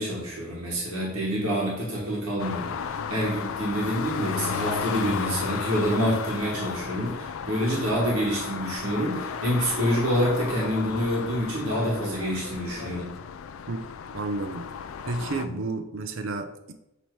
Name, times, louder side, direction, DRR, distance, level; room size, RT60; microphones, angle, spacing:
voice 1, 0.0-13.1 15.4-15.5, equal, 75° right, -4 dB, 1.4 m, -27 dB
sound 1, 2.4-15.5, left 7 dB, 65° left, 0.4 m, -34 dB
voice 2, 14.1-14.7 15.1-16.7, right 3 dB, 60° right, 8 dB, 0.5 m, -31 dB
7.0 x 2.9 x 4.6 m, 0.90 s
head